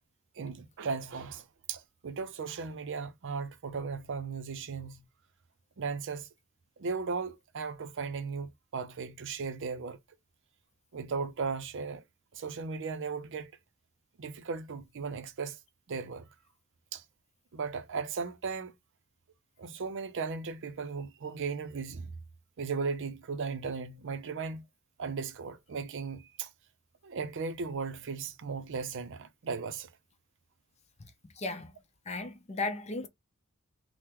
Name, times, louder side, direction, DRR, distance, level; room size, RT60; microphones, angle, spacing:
voice 1, 0.4-5.0 5.8-6.3 6.8-10.0 10.9-12.0 12.3-13.5 14.2-15.6 15.9-16.3 16.9-17.0 17.5-18.7 19.6-22.1 22.6-24.6 25.0-26.5 27.0-29.9, right 5 dB, 60° right, 0.5 m, -36 dB
voice 2, 31.4-31.7 32.1-33.1, left 3 dB, 30° left, 0.5 m, -35 dB
3.6 x 2.1 x 2.9 m
head